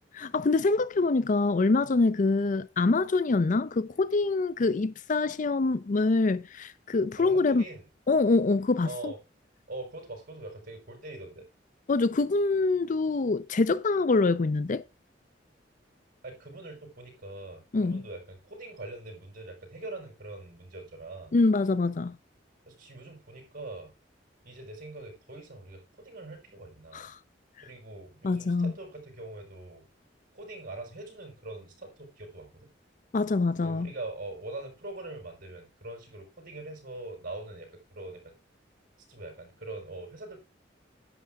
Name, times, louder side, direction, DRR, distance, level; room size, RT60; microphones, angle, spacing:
voice 1, 0.1-7.6 8.1-9.1 11.9-14.8 17.7-18.0 21.3-22.2 26.9-27.1 28.2-28.7 33.1-33.9, left 3 dB, 45° left, 0.5 m, -25 dB
voice 2, 7.2-7.9 8.8-9.2 9.7-11.5 16.2-21.3 22.7-23.9 24.4-27.1 27.6-29.9 30.3-32.7 33.6-38.3 39.1-40.4, right 2 dB, 50° right, 5.6 m, -43 dB
11.0 x 8.7 x 3.6 m
head